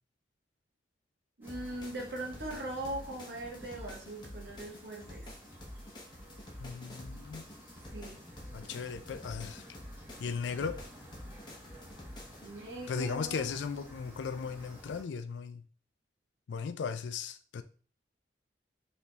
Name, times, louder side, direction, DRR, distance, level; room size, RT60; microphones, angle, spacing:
sound 1, 1.4-15.0, equal, 10° right, 1.6 m, -53 dB
voice 1, 1.4-5.3 7.9-8.2 12.4-13.5, right 1 dB, 70° right, 1.2 m, -40 dB
sound 2, 1.5-12.5, left 1 dB, 25° left, 0.8 m, -48 dB
voice 2, 6.6-7.5 8.5-9.6 10.2-10.8 12.9-15.6 16.5-17.6, left 6 dB, 85° left, 0.4 m, -37 dB
4.2 x 3.4 x 2.8 m
head